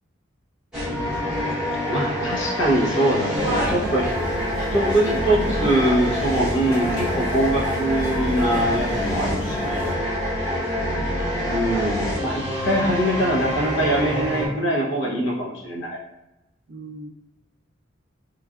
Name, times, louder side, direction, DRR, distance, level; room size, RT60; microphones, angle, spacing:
sound 1, 0.7-14.5, equal, 5° right, 1.0 m, -26 dB
voice 1, 0.8-1.7 2.2-2.4 3.4-4.2 4.6-5.7 10.8-11.8 16.7-17.1, right 1 dB, 45° right, 3 dB, 0.3 m, -35 dB
voice 2, 1.9-4.0 4.6-10.0 11.5-16.0, right 1 dB, 70° left, -3 dB, 0.8 m, -23 dB
sound 2, 3.3-9.9, equal, 40° left, 1.1 m, -32 dB
3.1 x 2.3 x 2.3 m, 0.95 s
head